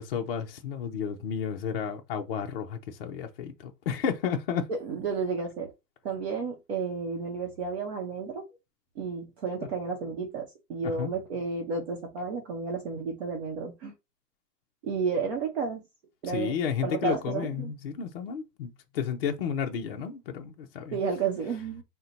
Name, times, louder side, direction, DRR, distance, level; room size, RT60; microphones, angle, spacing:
voice 1, 0.0-4.7 10.8-11.1 16.2-21.0, left 7 dB, 35° left, 0.5 m, -32 dB
voice 2, 4.7-5.7 6.0-8.5 9.0-13.9 14.8-15.8 16.2-16.5 16.8-17.7 20.9-21.8, right 5 dB, 40° right, 0.8 m, -32 dB
4.1 x 2.2 x 3.9 m
hypercardioid pair, 155°, 49 cm